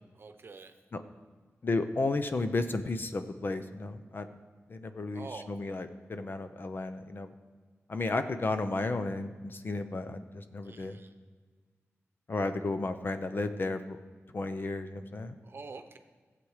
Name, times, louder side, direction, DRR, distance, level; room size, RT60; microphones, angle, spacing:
voice 1, 0.1-0.7 5.1-5.5 10.6-11.1 15.4-16.0, right 4 dB, 50° right, 7 dB, 0.9 m, -46 dB
voice 2, 1.6-4.3 4.7-7.3 7.9-11.0 12.3-14.0 14.3-15.4, left 2 dB, 45° left, 9 dB, 0.7 m, -33 dB
16.5 x 7.7 x 4.9 m, 1.5 s
wide cardioid pair, 130°, 5 cm